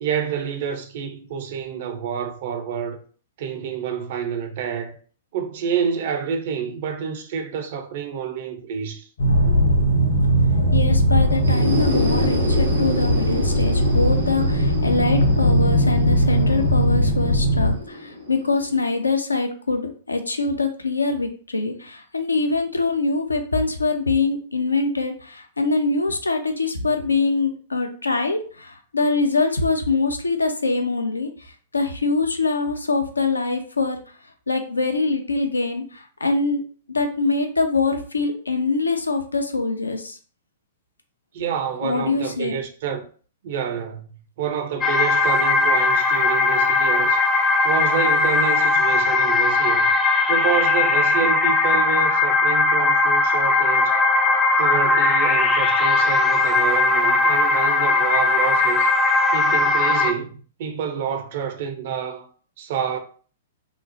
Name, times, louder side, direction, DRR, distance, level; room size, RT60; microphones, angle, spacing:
voice 1, 0.0-3.0 3.4-5.0 5.3-9.1 41.3-43.0 43.4-44.1 44.4-47.2 47.6-49.9 50.3-53.9 54.6-58.9 59.3-62.3 62.6-63.0, right 7 dB, 50° right, 0.5 m, -28 dB
sound 1, 9.2-17.8, equal, 60° left, 0.8 m, -19 dB
voice 2, 10.7-34.0 34.5-36.6 36.9-40.2 41.8-42.5, left 3 dB, 80° left, 0.4 m, -24 dB
sound 2, 11.3-18.9, left 1 dB, 75° right, 0.9 m, -29 dB
sound 3, 44.8-60.1, left 3 dB, 15° left, 0.3 m, -19 dB
2.9 x 2.0 x 2.6 m
figure-of-eight pair, 105°, 0 cm